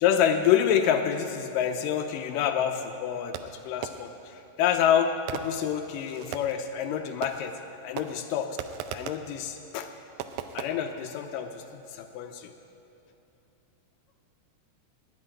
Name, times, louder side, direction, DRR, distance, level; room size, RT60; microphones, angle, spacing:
voice 1, 0.0-4.1 4.6-7.6 7.8-8.6 8.9-9.9 10.5-11.6 11.9-12.5, left 9 dB, 80° left, 7 dB, 2.1 m, -27 dB
Fireworks, 3.3-4.3 5.3-6.7 7.2-7.7 8.0-9.3 10.2-10.7, right 9 dB, 90° right, 1.7 m, -38 dB
9.9 x 8.8 x 9.8 m, 2.9 s
omnidirectional pair, 4.1 m